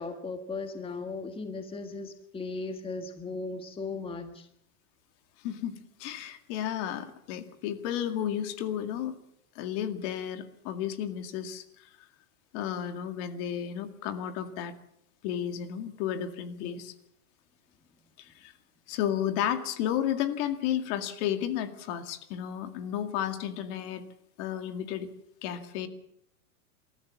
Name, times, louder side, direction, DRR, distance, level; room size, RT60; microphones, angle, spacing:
voice 1, 0.0-4.5 16.6-16.8, left 3 dB, 10° left, 7 dB, 1.6 m, -37 dB
voice 2, 5.4-9.1 9.6-11.9 12.5-14.8 15.2-16.9 18.2-18.5 18.9-24.0 24.4-25.1 25.4-25.9, left 10 dB, 50° left, 8 dB, 2.2 m, -32 dB
28.0 x 13.5 x 7.2 m, 0.75 s
supercardioid pair, 135°, 45 cm